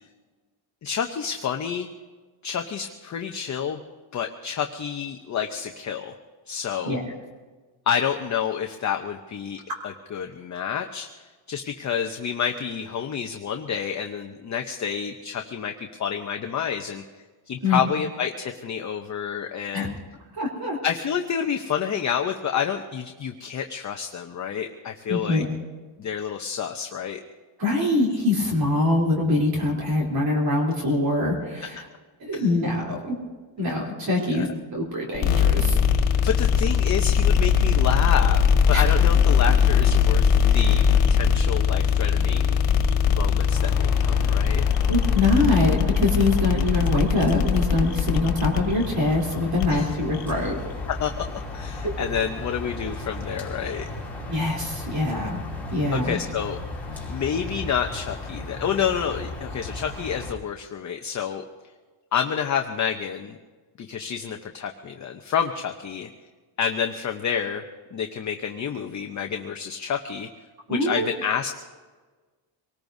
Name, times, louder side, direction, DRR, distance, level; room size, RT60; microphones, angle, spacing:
voice 1, 0.8-1.9 2.4-3.8 4.1-6.2 6.5-7.0 7.9-17.0 17.5-20.0 20.8-25.4 26.0-27.2 32.3-32.5 34.2-34.5 36.2-38.4 38.7-42.6 43.0-44.6 49.7-49.9 50.9-51.2 51.5-53.9 55.9-56.6 57.1-61.4 62.1-63.4 63.8-66.1 66.6-67.6 67.9-70.3 70.7-71.5, left 8 dB, 35° left, 4 dB, 0.7 m, -29 dB
voice 2, 20.3-20.8 25.1-25.5 27.6-31.9 32.2-33.1 33.6-35.8 38.7-38.8 40.5-40.6 44.9-50.6 54.3-55.4 55.7-56.2 70.7-71.1, left 2 dB, 45° right, -2 dB, 3.4 m, -24 dB
sound 1, 35.1-52.2, left 7 dB, 75° left, 1.7 m, -21 dB
sound 2, 43.5-60.3, left 2 dB, 5° left, 2.7 m, -35 dB
25.0 x 19.0 x 2.7 m, 1.4 s
cardioid pair, 175°, 49 cm